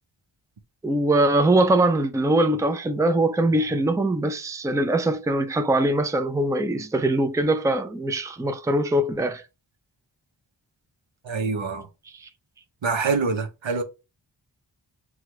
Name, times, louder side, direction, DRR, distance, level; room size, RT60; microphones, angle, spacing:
voice 1, 0.8-9.4 12.2-12.3, right 1 dB, 5° right, 0.5 m, -22 dB
voice 2, 11.2-11.9 12.8-13.8, right 4 dB, 80° right, 0.9 m, -25 dB
6.2 x 2.4 x 3.1 m
wide cardioid pair, 55°, 46 cm